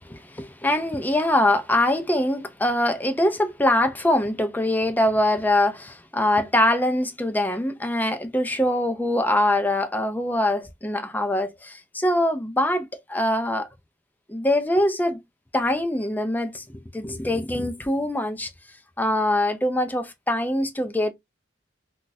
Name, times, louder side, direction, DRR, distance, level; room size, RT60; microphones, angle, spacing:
voice 1, 0.0-13.7 14.3-15.2 15.5-18.5 19.0-21.1, left 1 dB, 10° left, 0.4 m, -23 dB
2.5 x 2.3 x 3.9 m
head